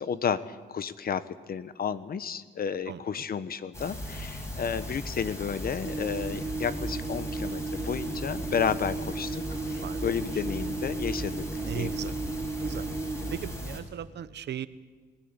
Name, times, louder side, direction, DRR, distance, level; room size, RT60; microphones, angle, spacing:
voice 1, 0.0-12.0, left 7 dB, 50° left, 15 dB, 1.1 m, -32 dB
sound 1, 3.7-13.8, left 1 dB, 15° left, 6.1 m, -37 dB
sound 2, 5.8-13.3, right 3 dB, 15° right, 0.8 m, -35 dB
voice 2, 11.6-12.1 12.6-12.9 13.3-14.7, right 9 dB, 60° right, 15 dB, 1.0 m, -37 dB
21.0 x 15.5 x 9.8 m, 1.4 s
cardioid pair, 90°, 20 cm